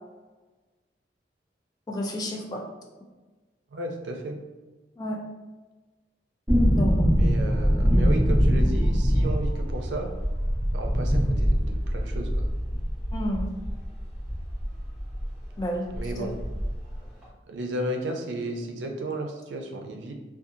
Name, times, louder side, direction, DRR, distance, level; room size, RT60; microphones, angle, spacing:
voice 1, 1.9-2.6 5.0-5.2 6.7-7.1 13.1-13.5 15.6-15.9 16.2-16.3, equal, 20° left, 0 dB, 0.4 m, -30 dB
voice 2, 3.7-4.4 7.2-10.1 10.7-12.5 15.9-16.4 17.5-20.1, right 1 dB, 90° right, 3 dB, 0.4 m, -33 dB
sound 1, 6.5-15.3 15.6-15.7 15.9-17.0 17.2-17.3, equal, 10° right, 0.9 m, -23 dB
2.7 x 2.3 x 2.5 m, 1.2 s
head